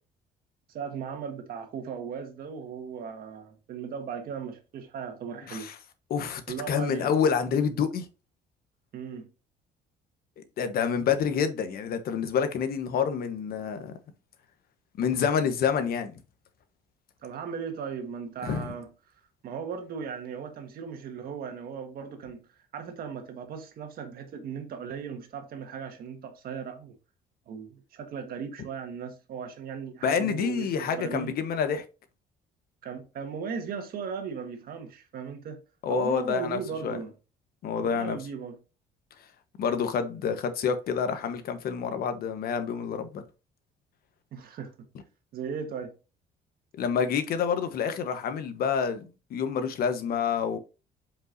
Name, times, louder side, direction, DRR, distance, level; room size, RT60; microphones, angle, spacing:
voice 1, 0.7-5.7 6.5-7.1 8.9-9.3 17.2-18.9 19.4-22.4 22.7-26.9 27.5-31.3 32.8-35.6 35.9-37.1 37.8-38.6 44.3-44.7 45.3-45.9, right 6 dB, 60° right, 1.6 m, -37 dB
voice 2, 6.1-6.4 6.7-8.1 10.6-13.9 15.0-16.1 18.4-18.7 30.0-31.8 35.8-37.0 37.6-38.2 39.6-43.2 46.8-50.6, left 7 dB, 60° left, 1.1 m, -28 dB
7.8 x 5.4 x 2.7 m
cardioid pair, 110°, 17 cm